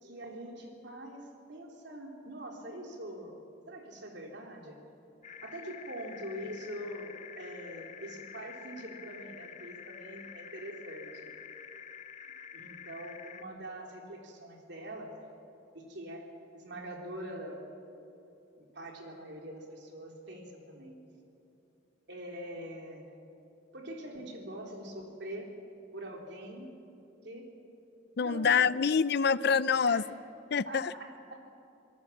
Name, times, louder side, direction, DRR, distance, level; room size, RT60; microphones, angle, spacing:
voice 1, 0.0-4.8 5.4-11.3 12.5-15.1 15.7-16.3 16.5-17.7 18.6-21.0 22.1-23.0 23.7-25.5 25.9-26.8 27.2-27.5 28.2-28.8 29.8-30.1 30.7-31.4, right 1 dB, 65° right, 1 dB, 3.7 m, -44 dB
sound 1, 5.2-13.4, left 7 dB, 40° left, 1.1 m, -48 dB
voice 2, 28.2-30.0 30.5-30.9, left 6 dB, 60° left, 17 dB, 0.5 m, -26 dB
26.5 x 18.5 x 7.2 m, 2.9 s
head